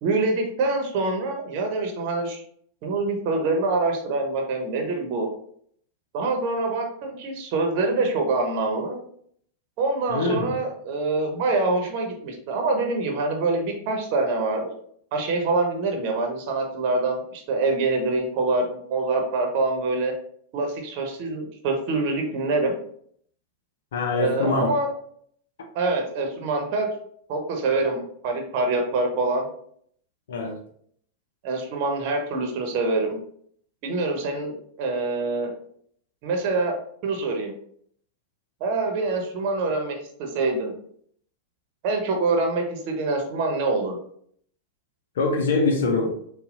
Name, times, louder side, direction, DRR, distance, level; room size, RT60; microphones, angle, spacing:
voice 1, 0.0-2.4 2.8-5.3 6.1-9.0 9.8-14.7 15.1-20.1 20.5-22.8 24.1-24.9 25.7-26.9 27.3-29.4 31.4-33.2 33.8-35.5 36.2-36.8 37.0-37.5 38.6-40.7 41.8-44.0, right 3 dB, 45° right, 3 dB, 1.0 m, -25 dB
voice 2, 10.1-10.5 23.9-24.7 30.3-30.6 45.2-46.2, left 3 dB, 60° left, 3 dB, 0.7 m, -24 dB
6.8 x 2.4 x 2.6 m, 0.63 s
figure-of-eight pair, 90°, 0 cm